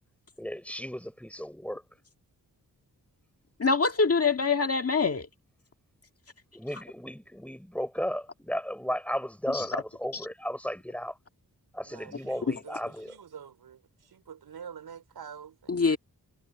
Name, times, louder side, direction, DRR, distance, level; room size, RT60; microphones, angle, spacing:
voice 1, 0.4-1.8 6.5-11.1 11.7-13.1, equal, 5° left, 5.3 m, -34 dB
voice 2, 3.6-5.3 9.5-9.7 10.1-10.2 12.5-12.6 15.7-16.0, left 4 dB, 40° left, 1.8 m, -25 dB
voice 3, 11.8-15.8, right 7 dB, 90° right, 3.8 m, -47 dB
wide cardioid pair, 95°, 37 cm